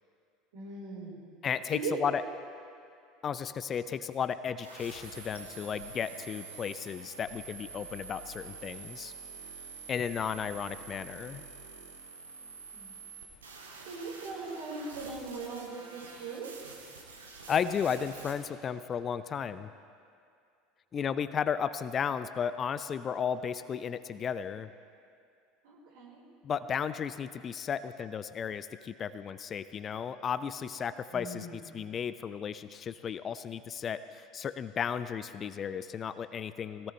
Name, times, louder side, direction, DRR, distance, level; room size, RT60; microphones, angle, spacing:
voice 1, 0.5-1.3 1.7-1.9 12.7-13.0 13.9-16.5 25.6-26.2 31.1-31.7, right 4 dB, 65° right, -3 dB, 4.2 m, -40 dB
voice 2, 1.4-2.2 3.2-9.1 9.9-11.4 17.5-19.7 20.9-24.7 26.4-36.9, left 7 dB, 35° left, 13 dB, 0.5 m, -34 dB
sound 1, 4.6-18.3, right 4 dB, 80° right, 1.8 m, -47 dB
22.0 x 17.5 x 3.2 m, 2.3 s
figure-of-eight pair, 70°, 0 cm